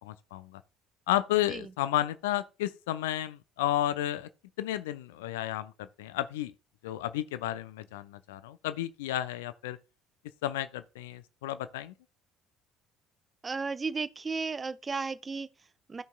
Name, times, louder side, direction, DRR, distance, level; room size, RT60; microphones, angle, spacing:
voice 1, 0.0-0.6 1.1-4.3 4.6-6.5 6.8-9.8 10.4-11.9, left 13 dB, 70° left, 0.4 m, -32 dB
voice 2, 13.4-16.0, right 4 dB, 25° right, 0.4 m, -35 dB
15.5 x 5.3 x 2.2 m
figure-of-eight pair, 55°, 0 cm